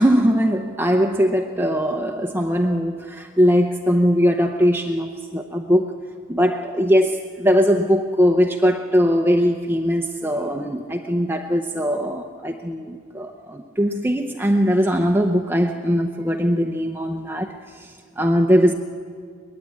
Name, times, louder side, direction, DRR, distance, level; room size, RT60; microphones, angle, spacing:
voice 1, 0.0-5.9 6.3-18.7, equal, 10° right, 4 dB, 0.8 m, -20 dB
23.0 x 20.5 x 8.5 m, 2.1 s
head